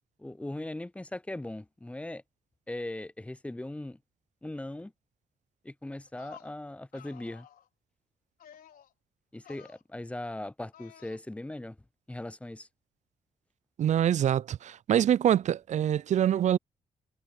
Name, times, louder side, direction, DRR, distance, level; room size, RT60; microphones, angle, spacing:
voice 1, 0.2-2.2 2.7-4.0 4.4-4.9 5.6-7.5 9.3-11.8 12.1-12.7, left 1 dB, 10° left, 0.5 m, -39 dB
sound 1, 6.1-6.5 6.9-7.7 8.4-8.9 9.3-9.8 10.7-11.2, left 10 dB, 75° left, 5.1 m, -53 dB
voice 2, 13.8-16.6, right 10 dB, 50° right, 0.4 m, -25 dB
supercardioid pair, 60°, 15 cm